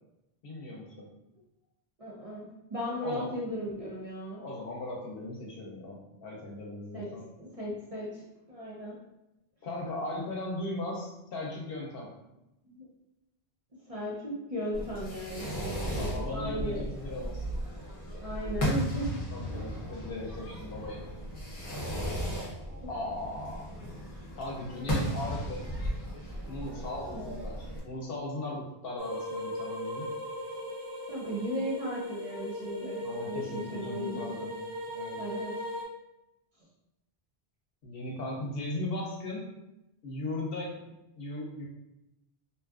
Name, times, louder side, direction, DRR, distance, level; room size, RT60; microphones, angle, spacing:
voice 1, 0.4-1.1 3.0-3.4 4.4-7.3 9.6-12.1 15.9-17.4 19.3-21.0 22.9-23.6 24.3-25.7 26.5-30.1 33.0-34.6 34.9-35.2 37.8-39.5 40.0-41.6, left 2 dB, 70° left, -2 dB, 0.8 m, -38 dB
voice 2, 2.0-2.4 2.7-4.4 6.9-7.1 7.4-8.2 8.5-9.0 12.7-12.9 13.9-16.1 16.3-16.8 18.2-19.2 19.5-19.7 27.1-27.3 31.1-34.5 35.2-35.5, equal, 40° right, -6 dB, 0.6 m, -36 dB
Fireworks, 14.7-27.8, equal, 40° left, 0.6 m, -35 dB
sound 1, 29.0-35.8, left 1 dB, 70° right, 0.8 m, -38 dB
2.6 x 2.3 x 2.3 m, 0.91 s
omnidirectional pair, 1.1 m